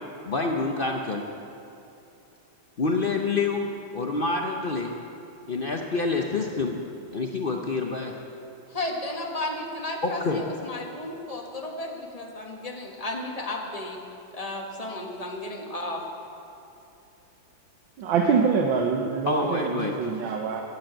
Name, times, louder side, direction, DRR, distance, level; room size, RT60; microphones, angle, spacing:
voice 1, 0.2-1.2 2.8-3.7 3.9-4.9 5.5-6.7 7.1-8.1 10.0-10.4 19.3-19.9, left 3 dB, 80° left, 2 dB, 0.4 m, -27 dB
voice 2, 8.7-14.0 14.3-16.0, left 1 dB, 20° left, 1 dB, 1.3 m, -33 dB
voice 3, 18.0-20.6, right 5 dB, 75° right, 2 dB, 1.6 m, -25 dB
13.5 x 8.7 x 7.8 m, 2.8 s
omnidirectional pair, 2.2 m